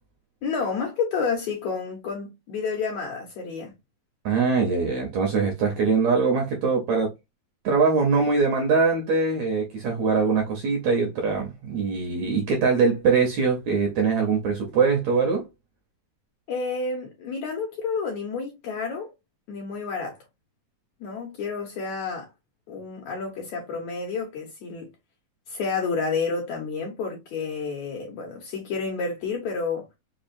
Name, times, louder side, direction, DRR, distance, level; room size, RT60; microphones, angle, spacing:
voice 1, 0.4-3.7 16.5-19.1 19.5-20.2 21.0-22.3 22.7-24.9 25.5-29.9, left 5 dB, 70° left, 1.8 m, -30 dB
voice 2, 4.3-7.1 7.6-15.5, right 4 dB, 70° right, 1.7 m, -22 dB
5.4 x 2.3 x 2.6 m
omnidirectional pair, 4.1 m